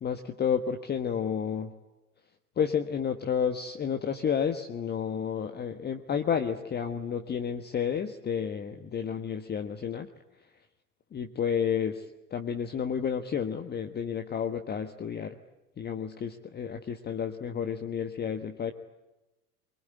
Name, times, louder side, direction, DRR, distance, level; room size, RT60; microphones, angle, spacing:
voice 1, 0.0-1.7 2.6-10.1 11.1-15.4 15.8-18.7, left 7 dB, 20° left, 6 dB, 1.4 m, -31 dB
24.5 x 23.0 x 9.6 m, 1.0 s
figure-of-eight pair, 90°, 47 cm